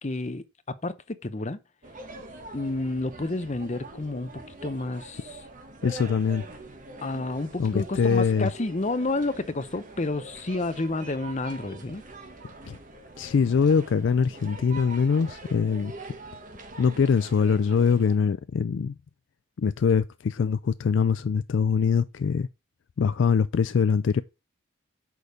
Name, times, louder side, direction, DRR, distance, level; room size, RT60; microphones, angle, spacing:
voice 1, 0.0-1.6 2.5-5.2 7.0-12.0, left 2 dB, 30° left, 0.7 m, -30 dB
sound 1, 1.8-18.2, right 2 dB, 35° right, 1.3 m, -44 dB
voice 2, 5.8-6.5 7.6-8.5 12.6-12.8 13.2-15.9 16.8-19.0 19.6-22.5 23.0-24.2, left 6 dB, 55° left, 0.3 m, -23 dB
6.3 x 5.0 x 6.8 m
head